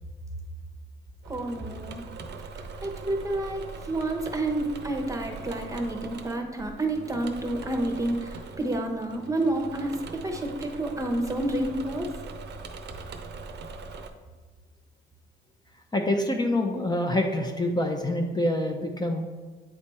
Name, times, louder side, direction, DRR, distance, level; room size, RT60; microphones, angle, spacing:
voice 1, 1.2-2.0 2.8-12.1, right 1 dB, 15° right, 3 dB, 0.9 m, -29 dB
Engine / Mechanisms, 1.2-14.1, right 4 dB, 60° right, 0.7 m, -41 dB
voice 2, 15.9-19.2, left 1 dB, 20° left, 2 dB, 0.7 m, -26 dB
8.6 x 3.4 x 4.3 m, 1.4 s
cardioid pair, 90°, 20 cm